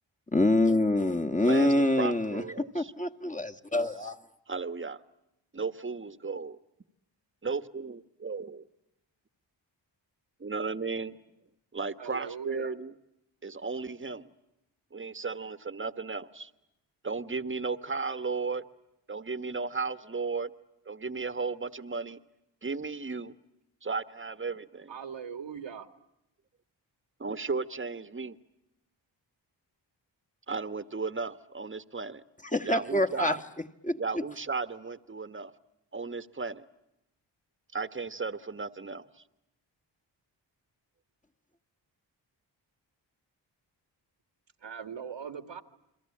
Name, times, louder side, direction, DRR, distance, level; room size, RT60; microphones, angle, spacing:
voice 1, 0.3-2.4 2.7-4.2 32.5-33.4 33.8-34.0, left 1 dB, 15° left, 4 dB, 1.6 m, -25 dB
voice 2, 1.4-2.9 4.5-5.0 5.5-6.6 7.4-8.7 10.4-11.2 11.7-12.9 13.4-14.3 14.9-16.5 17.0-18.6 19.1-20.5 20.8-22.2 22.6-23.3 23.8-24.9 27.2-28.4 30.5-32.2 32.6-33.4 34.0-35.5 35.9-36.7 37.7-39.2, right 4 dB, 25° right, 12 dB, 1.4 m, -35 dB
voice 3, 12.0-12.7 24.9-25.9 44.6-45.6, right 7 dB, 75° right, 9 dB, 2.0 m, -40 dB
29.5 x 22.5 x 8.6 m, 0.86 s
cardioid pair, 60°, 45 cm